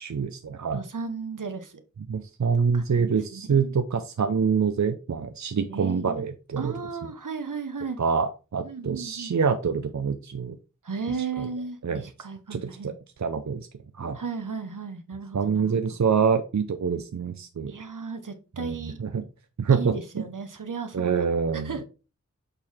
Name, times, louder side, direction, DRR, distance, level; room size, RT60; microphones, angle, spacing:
voice 1, 0.0-0.8 2.1-6.7 8.0-10.6 11.4-11.5 11.8-12.0 12.5-12.9 13.2-13.7 13.9-14.2 15.3-17.7 18.6-19.2 19.6-20.0 20.9-21.8, right 6 dB, 65° right, 9 dB, 0.6 m, -26 dB
voice 2, 0.7-1.8 2.7-3.7 5.7-6.3 6.6-8.0 8.6-9.3 10.8-12.9 14.1-15.7 17.7-19.0 19.7-21.2 21.5-21.8, right 5 dB, 85° right, 8 dB, 1.0 m, -35 dB
6.8 x 4.4 x 3.6 m, 0.33 s
wide cardioid pair, 50°, 31 cm